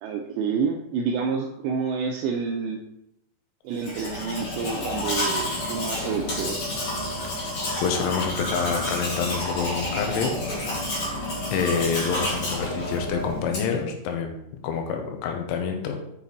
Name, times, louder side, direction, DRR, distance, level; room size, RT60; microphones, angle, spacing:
voice 1, 0.0-2.8 3.6-6.6, right 5 dB, 85° right, 2 dB, 2.5 m, -28 dB
Domestic sounds home sounds, 3.7-13.8, left 1 dB, 45° left, 3.1 m, -30 dB
voice 2, 7.8-10.3 11.5-14.4 14.6-16.0, left 6 dB, 80° left, 4 dB, 3.3 m, -27 dB
7.1 x 6.6 x 4.0 m, 0.79 s
omnidirectional pair, 5.7 m